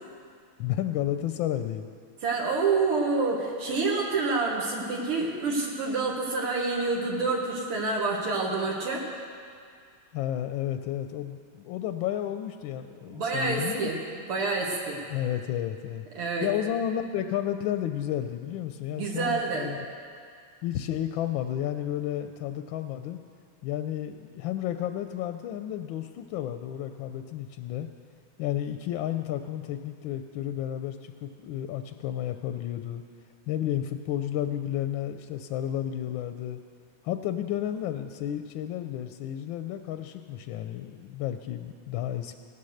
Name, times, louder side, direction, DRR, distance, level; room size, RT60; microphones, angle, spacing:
voice 1, 0.6-1.9 10.1-13.9 15.1-16.1 16.4-19.9 20.6-23.2 23.6-27.9 28.4-33.0 33.5-36.6 37.0-42.3, left 11 dB, 75° left, 8 dB, 1.2 m, -32 dB
voice 2, 2.2-9.1 13.1-14.0 14.3-15.0 16.1-16.5 19.0-19.7, right 3 dB, 80° right, -2 dB, 2.4 m, -27 dB
17.0 x 9.7 x 6.5 m, 2.2 s
omnidirectional pair, 2.4 m